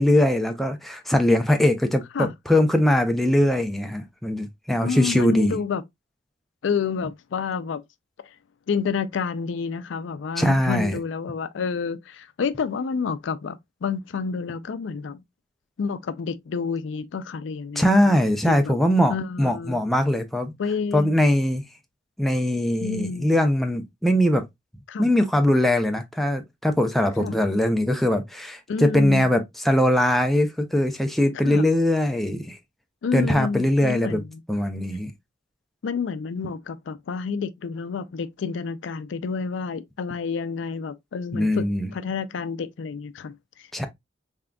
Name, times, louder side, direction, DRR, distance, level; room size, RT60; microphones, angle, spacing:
voice 1, 0.0-5.6 10.4-11.0 17.8-20.5 20.9-21.7 22.2-24.4 25.0-32.6 33.1-34.2 34.5-35.1 41.3-41.9 43.7-43.9, left 1 dB, ahead, 0.4 m, -21 dB
voice 2, 4.8-5.8 6.6-7.8 8.7-15.2 15.8-18.2 18.5-18.8 19.1-19.8 20.6-21.1 22.8-23.4 24.9-25.1 27.2-27.3 28.7-29.3 31.4-31.7 33.0-34.4 35.8-41.6 41.9-43.9, left 5 dB, 70° left, 0.4 m, -29 dB
3.7 x 3.5 x 2.2 m
head